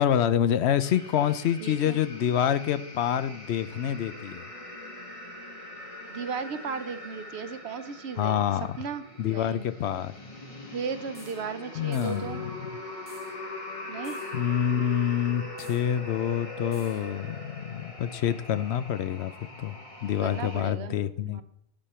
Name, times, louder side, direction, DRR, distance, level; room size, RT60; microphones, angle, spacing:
voice 1, 0.0-4.4 8.2-8.7 9.2-10.1 11.7-12.5 14.3-19.3 19.6-21.4, left 9 dB, 85° left, 13 dB, 0.9 m, -27 dB
sound 1, 0.8-20.6, left 2 dB, 30° left, 1.6 m, -42 dB
voice 2, 1.6-2.0 6.1-8.4 8.8-9.7 10.7-12.4 13.9-14.2 20.2-21.4, right 6 dB, 75° right, 10 dB, 1.1 m, -36 dB
sound 2, 11.1-11.4 11.9-12.3 13.1-13.3 14.0-14.4 15.6-15.9 16.7-17.1, equal, 10° left, 2.6 m, -51 dB
11.5 x 7.6 x 4.3 m, 0.73 s
omnidirectional pair, 1.1 m